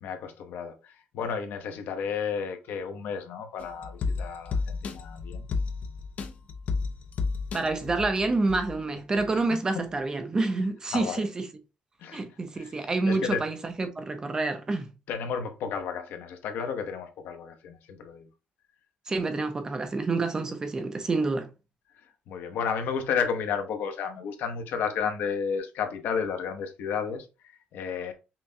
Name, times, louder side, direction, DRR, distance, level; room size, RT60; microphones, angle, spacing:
voice 1, 0.0-5.5 10.9-11.3 12.0-12.2 12.5-13.4 15.1-18.3 22.3-28.1, left 6 dB, 80° left, 0.7 m, -32 dB
sound 1, 3.6-8.8 9.2-9.3, left 4 dB, 50° left, 0.4 m, -32 dB
voice 2, 7.5-11.5 12.1-14.9 19.1-21.5, right 3 dB, 20° right, 0.5 m, -28 dB
5.6 x 2.1 x 2.6 m
cardioid pair, 170°, 3 cm